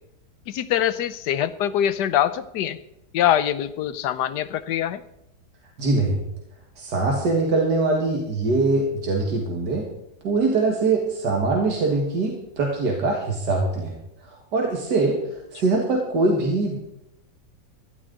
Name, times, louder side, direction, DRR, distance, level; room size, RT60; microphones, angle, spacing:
voice 1, 0.5-2.8 3.1-5.0, left 11 dB, 85° left, 14 dB, 1.3 m, -23 dB
voice 2, 5.8-6.2 6.8-9.8 10.2-13.9 14.2-16.8, right 3 dB, 85° right, 0 dB, 2.4 m, -23 dB
16.5 x 13.0 x 4.0 m, 0.83 s
omnidirectional pair, 1.8 m